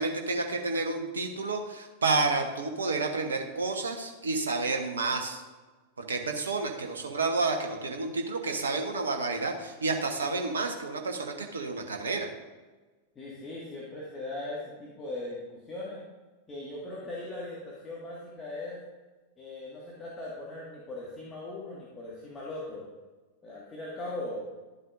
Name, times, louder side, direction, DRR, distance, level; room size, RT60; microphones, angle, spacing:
voice 1, 0.0-5.4 6.0-12.3, right 3 dB, 70° right, 3 dB, 1.0 m, -30 dB
voice 2, 13.2-16.0 16.5-18.8 19.4-22.8 23.4-24.4, left 2 dB, 20° left, -6 dB, 1.8 m, -39 dB
12.0 x 7.9 x 2.6 m, 1.3 s
figure-of-eight pair, 90°, 0 cm